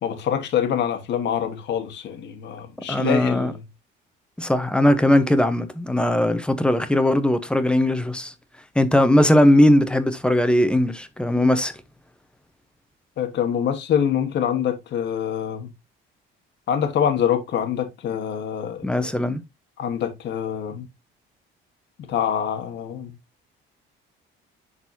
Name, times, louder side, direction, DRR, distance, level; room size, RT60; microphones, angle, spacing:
voice 1, 0.0-3.7 13.2-15.7 16.7-19.1 19.8-20.9 22.1-23.1, left 9 dB, 60° left, 1.4 m, -25 dB
voice 2, 2.9-3.5 4.4-8.3 8.8-11.7 18.8-19.4, left 1 dB, 5° left, 0.8 m, -19 dB
11.0 x 4.0 x 2.7 m
cardioid pair, 145°, 21 cm